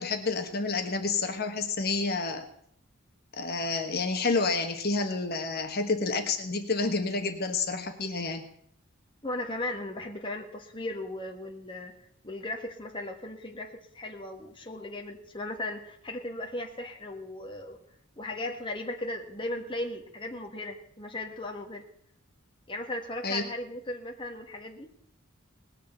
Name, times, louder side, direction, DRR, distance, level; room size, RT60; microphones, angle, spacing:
voice 1, 0.0-2.5 3.4-8.5 23.2-23.4, left 3 dB, 50° left, 6 dB, 1.3 m, -29 dB
voice 2, 9.2-11.9 12.2-17.8 18.2-21.8 22.7-24.9, left 1 dB, 25° left, 3 dB, 1.4 m, -37 dB
19.0 x 6.6 x 7.8 m, 0.68 s
head